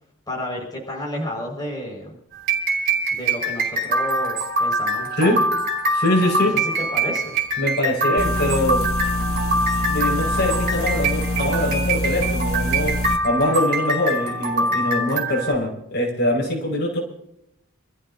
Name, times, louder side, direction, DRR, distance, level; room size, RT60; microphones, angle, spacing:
voice 1, 0.3-2.2 3.1-5.4 6.6-7.3, equal, 20° left, -2 dB, 5.5 m, -31 dB
sound 1, 2.3-15.5, right 2 dB, 45° right, 4.5 m, -24 dB
voice 2, 5.9-6.6 7.6-8.8 9.9-17.0, left 1 dB, 55° left, 0 dB, 5.6 m, -23 dB
sound 2, 8.2-13.2, left 1 dB, 80° left, 1.5 m, -25 dB
27.5 x 14.5 x 2.8 m, 0.77 s
head